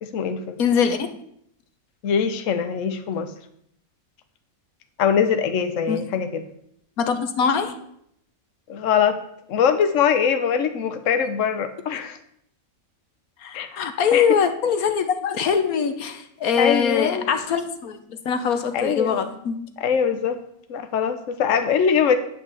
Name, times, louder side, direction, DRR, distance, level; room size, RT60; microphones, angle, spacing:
voice 1, 0.0-0.6 2.0-3.3 5.0-6.4 8.7-9.2 9.5-12.2 13.5-13.7 14.1-14.4 16.6-17.3 18.7-19.2 19.8-20.4 20.7-22.2, left 7 dB, 65° left, 8 dB, 1.2 m, -22 dB
voice 2, 0.6-1.1 5.9-6.0 7.0-7.8 13.4-18.0 18.2-19.6, left 6 dB, 80° left, 9 dB, 1.4 m, -22 dB
9.0 x 5.7 x 8.2 m, 0.71 s
omnidirectional pair, 1.5 m